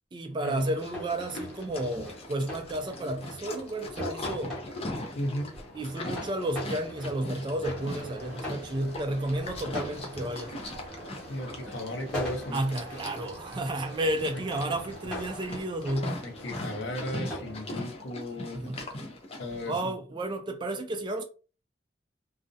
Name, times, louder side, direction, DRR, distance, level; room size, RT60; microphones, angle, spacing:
voice 1, 0.1-4.6 5.7-10.5 12.5-16.2 18.5-18.8 19.7-21.2, right 1 dB, 25° right, 0.3 m, -32 dB
Livestock farm animals working animals, 0.6-19.8, left 1 dB, 30° left, 0.5 m, -40 dB
sound 1, 0.6-17.7, equal, 5° left, 1.0 m, -43 dB
voice 2, 5.1-5.5 11.3-12.6 14.3-14.4 16.2-18.6 19.4-20.0, left 1 dB, 85° left, 0.7 m, -35 dB
sound 2, 7.7-15.6, right 2 dB, 70° right, 0.8 m, -47 dB
2.4 x 2.0 x 2.6 m
head